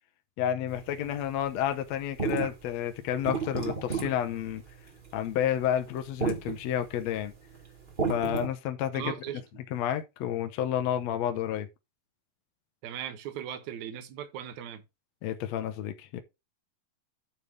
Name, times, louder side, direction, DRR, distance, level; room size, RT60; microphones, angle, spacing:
voice 1, 0.4-4.6 5.1-7.3 8.1-9.1 9.7-11.7 15.2-16.2, left 10 dB, 75° left, 1.7 m, -30 dB
sound 1, 0.7-8.5, right 5 dB, 20° right, 1.5 m, -34 dB
voice 2, 8.9-9.4 12.8-14.8, right 10 dB, 70° right, 2.3 m, -38 dB
9.2 x 3.3 x 6.5 m
omnidirectional pair, 3.8 m